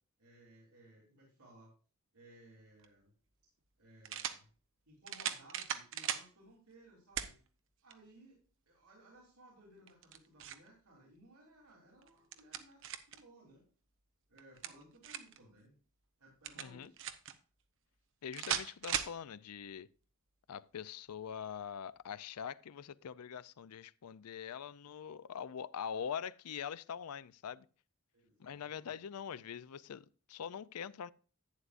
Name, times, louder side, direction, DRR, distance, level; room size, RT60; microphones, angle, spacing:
voice 1, 0.2-1.7 2.1-3.1 3.8-4.5 4.8-7.4 7.8-8.4 8.7-13.6 14.3-15.7 16.2-17.0 28.1-29.0, right 1 dB, 85° right, 3.3 m, -60 dB
sound 1, 2.8-2.9 4.0-4.4 5.1-6.3 7.2-7.3 7.9-8.0 9.9-10.7 12.0-13.2 14.4-15.4 16.4-17.3 18.3-19.2, right 9 dB, 60° right, 0.9 m, -38 dB
voice 2, 16.6-16.9 18.2-19.9 20.5-27.7 28.4-31.1, left 7 dB, 85° left, 0.4 m, -43 dB
11.5 x 9.5 x 2.5 m
head